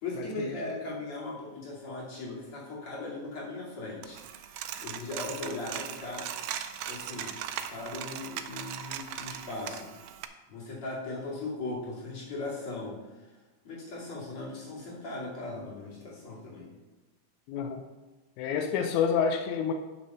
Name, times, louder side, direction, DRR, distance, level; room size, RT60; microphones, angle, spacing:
voice 1, 0.0-6.3 6.9-7.3 7.7-10.1 10.5-13.3 13.7-16.7, left 2 dB, 50° left, -5 dB, 3.3 m, -38 dB
Coin (dropping), 4.0-10.3, right 10 dB, 75° right, 1.6 m, -39 dB
voice 2, 17.5-17.8 18.4-19.7, left 7 dB, 90° left, 5 dB, 2.1 m, -28 dB
8.6 x 6.1 x 5.5 m, 1.2 s
omnidirectional pair, 3.3 m